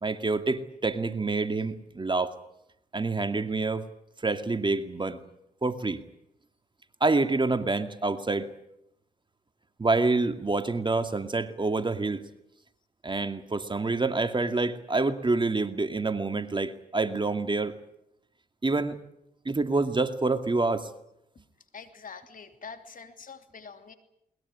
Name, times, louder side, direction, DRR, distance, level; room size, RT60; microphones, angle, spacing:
voice 1, 0.0-2.4 2.9-3.9 4.2-5.2 5.6-6.0 7.0-8.5 9.8-12.2 13.0-17.8 18.6-19.0 19.5-20.9, right 3 dB, 25° right, 9 dB, 2.2 m, -27 dB
voice 2, 21.7-23.9, left 5 dB, 50° left, 7 dB, 3.1 m, -45 dB
21.5 x 20.5 x 9.9 m, 0.80 s
supercardioid pair, 50°, 18 cm